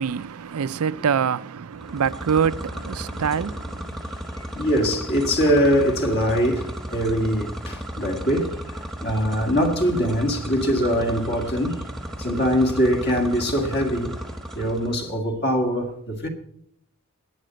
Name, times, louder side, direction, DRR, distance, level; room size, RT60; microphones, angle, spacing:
voice 1, 0.0-3.9, right 7 dB, 75° right, 0.4 m, -25 dB
sound 1, 1.7-15.1, right 1 dB, ahead, 1.1 m, -34 dB
voice 2, 4.5-11.8 12.2-14.2 14.6-16.3, equal, 45° left, 2.0 m, -22 dB
12.0 x 9.3 x 7.6 m
head